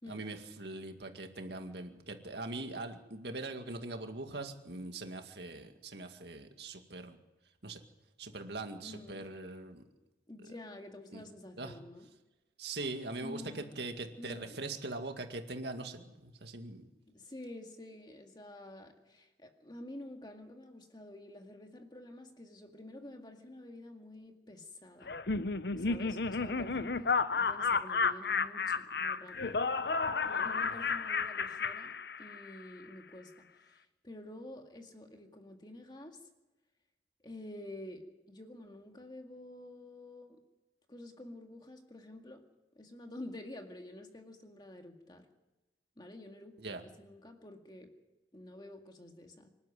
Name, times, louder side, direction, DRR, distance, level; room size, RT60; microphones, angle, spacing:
voice 1, 0.1-7.2 7.6-7.8 8.2-9.8 11.1-11.2 11.6-11.8 12.6-16.8 30.7-30.9 46.6-46.8, right 2 dB, 70° right, 5 dB, 2.1 m, -42 dB
voice 2, 8.8-9.3 10.3-12.1 13.2-13.8 14.2-14.6 17.1-25.2 25.8-29.7 30.2-36.3 37.2-40.4 40.9-42.4 42.8-45.3 46.0-47.9 48.3-49.5, left 1 dB, 25° left, 4 dB, 2.0 m, -49 dB
Laughter, 25.1-32.6, left 4 dB, 65° left, 0.8 m, -32 dB
25.5 x 12.5 x 9.4 m, 1.1 s
head